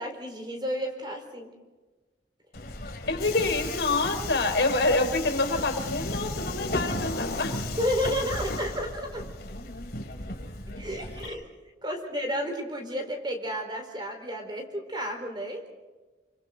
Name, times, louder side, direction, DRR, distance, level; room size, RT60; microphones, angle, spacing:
voice 1, 0.0-1.5 7.8-9.2 10.8-11.5 11.8-15.6, equal, 25° right, 4 dB, 4.3 m, -31 dB
Subway metro underground, 2.5-11.3, left 2 dB, 60° left, 2.5 m, -34 dB
voice 2, 3.1-7.6, left 2 dB, 80° left, 4 dB, 3.9 m, -26 dB
29.5 x 25.0 x 3.9 m, 1.2 s
head